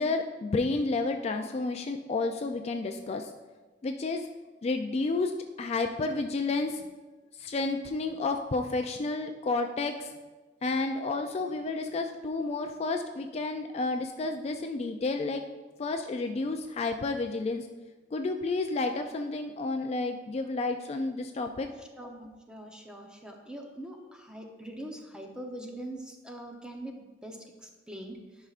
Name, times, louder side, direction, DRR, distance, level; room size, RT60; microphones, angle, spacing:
voice 1, 0.0-3.3 3.8-4.3 4.6-6.8 7.4-10.1 10.6-15.4 15.8-17.7 18.1-21.7, left 3 dB, 35° left, 5 dB, 0.3 m, -31 dB
voice 2, 22.0-28.2, right 1 dB, 5° right, 2 dB, 0.7 m, -43 dB
11.0 x 5.5 x 2.4 m, 1.2 s
head